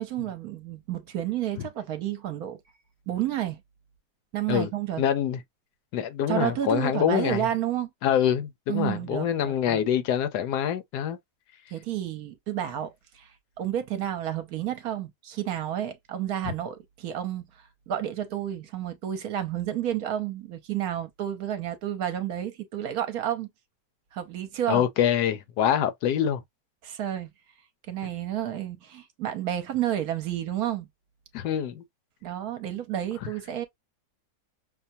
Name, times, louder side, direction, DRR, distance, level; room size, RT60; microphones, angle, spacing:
voice 1, 0.0-2.6 3.1-3.6 4.3-5.0 6.3-7.9 8.7-9.8 11.7-23.5 24.1-24.9 26.8-27.3 27.9-30.9 32.2-33.7, right 11 dB, 70° right, 1.1 m, -31 dB
voice 2, 5.0-5.4 5.9-7.5 8.0-11.2 24.7-26.4 31.3-31.8, left 9 dB, 75° left, 1.1 m, -25 dB
5.7 x 2.2 x 2.6 m
omnidirectional pair, 1.8 m